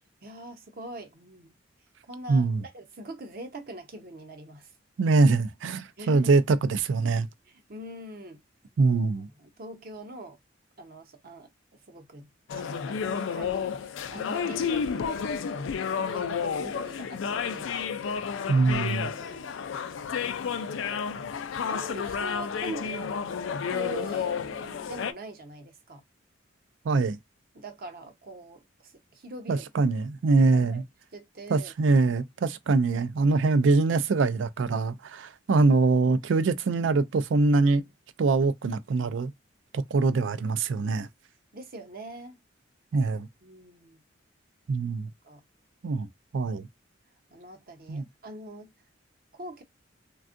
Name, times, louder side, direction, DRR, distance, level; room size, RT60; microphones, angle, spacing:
voice 1, 0.2-1.5 2.1-4.7 6.0-6.4 7.4-8.4 8.9-9.0 9.4-10.4 10.8-15.2 15.5-15.8 16.1-17.7 19.0-19.6 20.5-26.0 27.5-29.7 30.5-30.8 31.1-31.7 41.5-42.4 43.4-44.0 45.2-45.4 47.3-48.7 49.3-49.6, right 1 dB, 50° right, 0.8 m, -43 dB
voice 2, 2.3-2.6 5.0-7.3 8.8-9.3 18.5-19.1 26.9-27.2 29.5-30.8 31.5-37.8 38.2-39.3 39.7-41.1 42.9-43.3 44.7-45.1 45.8-46.1 46.3-46.7 47.9-48.0, right 3 dB, 70° right, 0.4 m, -23 dB
sound 1, 12.5-25.1, left 6 dB, 75° left, 0.4 m, -31 dB
3.4 x 2.3 x 2.5 m
head